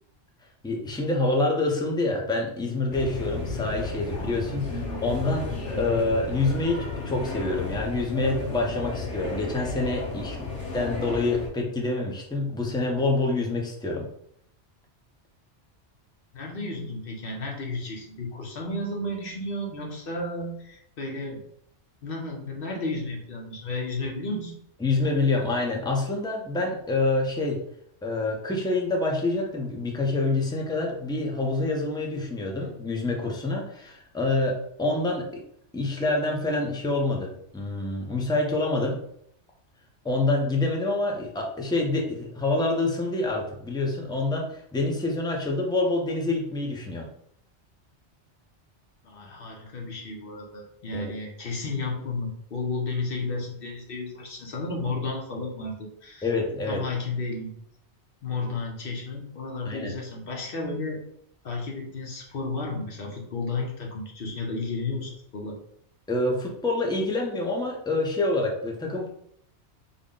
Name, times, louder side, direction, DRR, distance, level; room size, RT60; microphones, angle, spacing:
voice 1, 0.6-14.1 24.8-27.6 28.0-35.3 35.7-39.0 40.0-47.1 50.9-51.1 56.2-56.8 59.6-59.9 66.1-69.1, left 2 dB, 5° left, 0 dB, 0.3 m, -27 dB
sound 1, 2.9-11.5, left 3 dB, 80° left, 1.3 m, -33 dB
voice 2, 16.3-21.4 22.0-24.5 49.0-55.7 56.0-56.3 56.7-57.5 58.2-61.0 61.4-65.6, left 3 dB, 55° left, 0 dB, 0.9 m, -32 dB
3.7 x 2.1 x 3.7 m, 0.70 s
omnidirectional pair, 1.2 m